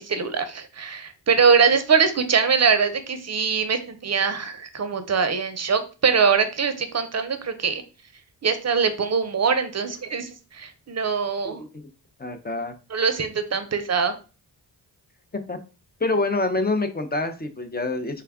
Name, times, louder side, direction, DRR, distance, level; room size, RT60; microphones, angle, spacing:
voice 1, 0.0-7.8 8.4-11.6 12.9-14.2, right 5 dB, 35° right, 9 dB, 0.6 m, -22 dB
voice 2, 11.4-11.8 12.2-12.7 15.5-15.6 16.0-18.2, left 2 dB, 20° left, 6 dB, 0.6 m, -26 dB
3.3 x 2.3 x 3.4 m, 0.33 s
cardioid pair, 55°, 44 cm